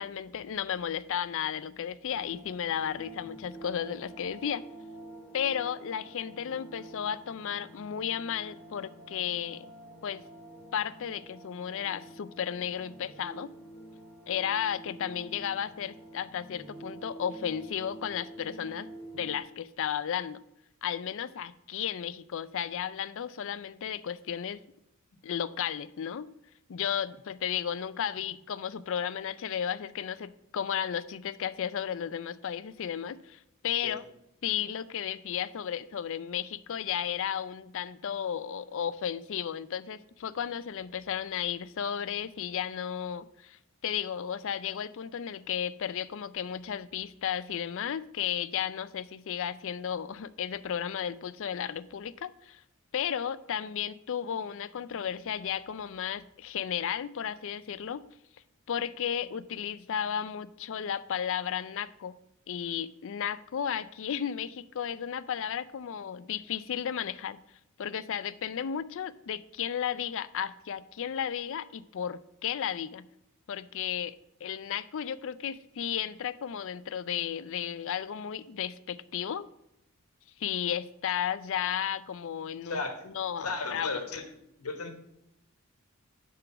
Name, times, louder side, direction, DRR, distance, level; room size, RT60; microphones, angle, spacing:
voice 1, 0.0-4.6 5.3-9.7 10.0-10.2 10.7-13.5 14.3-18.9 19.1-20.4 20.8-24.6 25.2-26.3 26.7-34.0 34.4-52.6 52.9-58.0 58.7-62.2 62.5-67.4 67.8-73.1 73.5-74.2 74.4-79.5 80.4-83.9, left 8 dB, 60° left, 16 dB, 0.4 m, -34 dB
sound 1, 2.1-19.4, right 1 dB, 10° left, 1.4 m, -48 dB
voice 2, 82.7-83.1 83.4-84.2 84.6-84.9, left 3 dB, 80° left, 6 dB, 1.3 m, -34 dB
9.9 x 3.8 x 5.8 m, 0.82 s
head